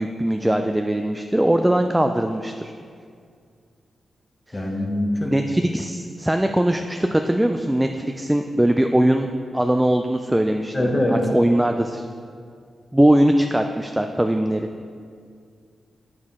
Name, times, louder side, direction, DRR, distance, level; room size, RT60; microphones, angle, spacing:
voice 1, 0.0-2.7 4.5-4.6 5.3-9.3 9.5-10.7 11.1-12.1 12.9-14.7, right 1 dB, 10° right, 5 dB, 0.3 m, -20 dB
voice 2, 4.5-5.3 10.7-11.3, left 1 dB, 25° left, 1 dB, 1.0 m, -23 dB
7.5 x 6.1 x 3.7 m, 2.2 s
cardioid pair, 85°, 0 cm